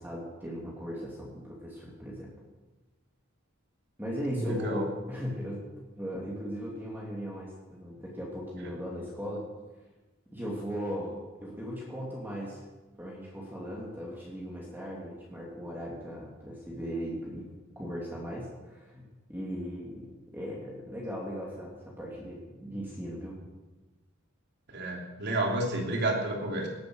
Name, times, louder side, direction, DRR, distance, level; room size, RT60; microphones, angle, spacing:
voice 1, 0.0-2.3 4.0-5.6 6.0-9.4 10.3-12.6 13.0-17.5 17.7-20.1 20.3-23.3, equal, 10° right, -4 dB, 3.1 m, -38 dB
voice 2, 4.4-4.9 24.7-26.7, right 1 dB, 55° right, 1 dB, 3.3 m, -30 dB
18.0 x 10.5 x 6.6 m, 1.2 s
head